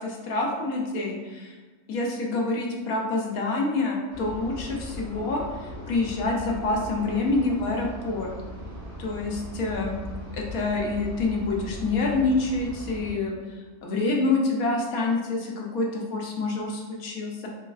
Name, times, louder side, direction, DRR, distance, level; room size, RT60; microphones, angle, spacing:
voice 1, 0.0-1.6 1.9-8.3 9.0-9.9 10.3-17.5, left 3 dB, 70° left, -1 dB, 1.1 m, -27 dB
sound 1, 4.1-13.1, equal, 80° right, 1.7 m, -39 dB
4.4 x 3.0 x 2.3 m, 1.4 s
omnidirectional pair, 1.6 m